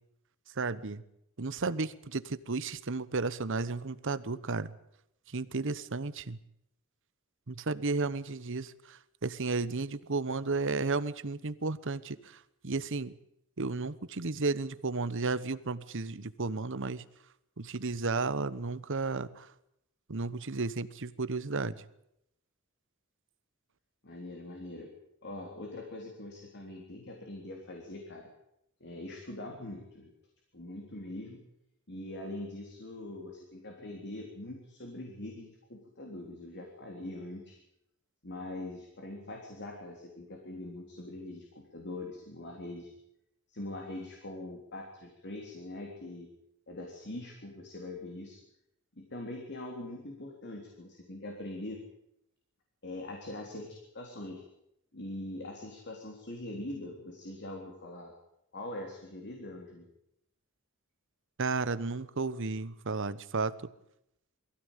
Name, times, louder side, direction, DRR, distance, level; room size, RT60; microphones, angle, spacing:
voice 1, 0.6-1.0 1.4-4.7 5.3-6.4 7.5-13.2 13.6-17.0 17.6-19.5 20.1-21.8 61.4-63.5, right 3 dB, 60° right, 15 dB, 1.1 m, -33 dB
voice 2, 24.0-24.9 25.2-28.3 28.8-30.1 30.5-31.4 31.9-37.6 38.2-42.9 43.5-46.3 46.7-48.4 49.0-51.8 52.8-54.4 54.9-58.1 58.5-59.9, left 1 dB, 55° left, 1 dB, 3.7 m, -42 dB
22.5 x 16.0 x 9.1 m, 0.79 s
head